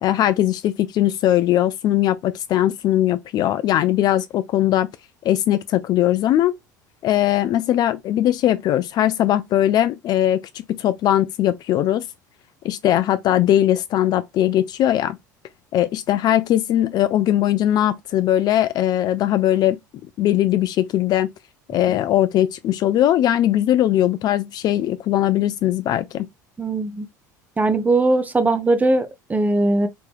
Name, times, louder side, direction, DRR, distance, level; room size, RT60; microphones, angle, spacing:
voice 1, 0.0-4.9 5.2-6.6 7.0-12.1 12.6-15.2 15.7-19.8 20.2-21.3 21.7-26.3, left 12 dB, 45° left, 0.4 m, -20 dB
voice 2, 26.6-27.1 27.6-29.9, right 2 dB, 15° right, 0.7 m, -20 dB
3.3 x 3.1 x 2.3 m
figure-of-eight pair, 70°, 10 cm